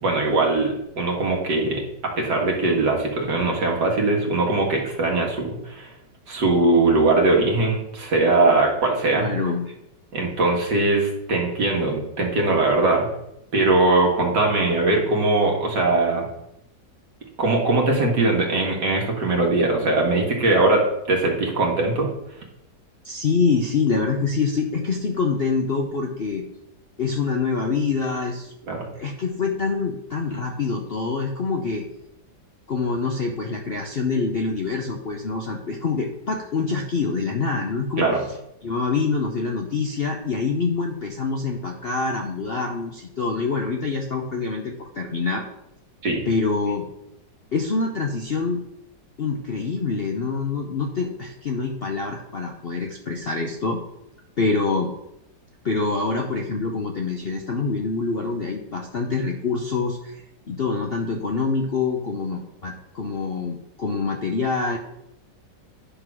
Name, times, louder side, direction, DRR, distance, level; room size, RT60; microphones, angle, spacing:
voice 1, 0.0-5.9 6.3-9.3 10.1-13.1 13.5-16.3 17.4-22.1 28.7-28.9 38.0-38.2 46.0-46.2, right 2 dB, 65° right, 0 dB, 2.3 m, -21 dB
voice 2, 9.1-9.7 23.0-26.5 27.0-28.5 28.9-31.9 32.7-38.1 38.6-45.4 46.3-46.8 47.5-48.6 49.2-53.8 54.4-54.9 55.6-60.2 60.5-64.8, left 4 dB, 50° left, 2 dB, 0.7 m, -25 dB
10.0 x 3.8 x 6.1 m, 0.82 s
omnidirectional pair, 1.9 m